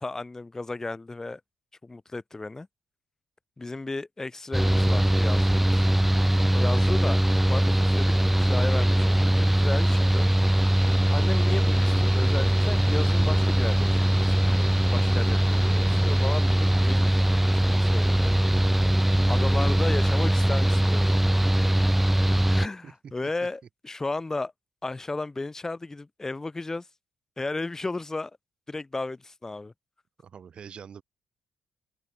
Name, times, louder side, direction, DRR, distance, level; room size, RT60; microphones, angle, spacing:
voice 1, 0.0-1.4 1.8-2.7 3.6-5.9 6.5-7.2 7.5-10.3 11.1-17.2 17.5-18.3 19.3-21.2 22.5-24.5 24.8-26.9 27.4-28.3 28.7-29.7, left 3 dB, 25° left, 1.1 m, -34 dB
Mechanical fan, 4.5-22.7, right 1 dB, 5° right, 0.5 m, -21 dB
voice 2, 30.2-31.0, right 7 dB, 55° right, 1.1 m, -44 dB
open air
hypercardioid pair, 45°, 2 cm